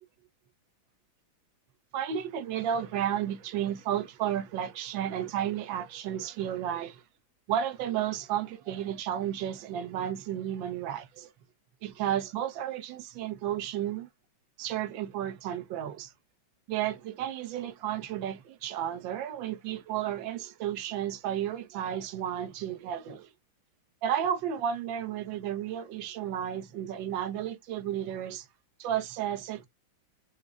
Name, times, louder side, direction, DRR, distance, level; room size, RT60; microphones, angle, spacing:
voice 1, 1.9-7.0 7.5-11.3 11.8-14.1 14.6-16.1 16.7-23.3 24.0-28.5 28.8-29.7, right 10 dB, 75° right, 1.4 m, -32 dB
4.9 x 2.0 x 2.4 m
omnidirectional pair, 2.2 m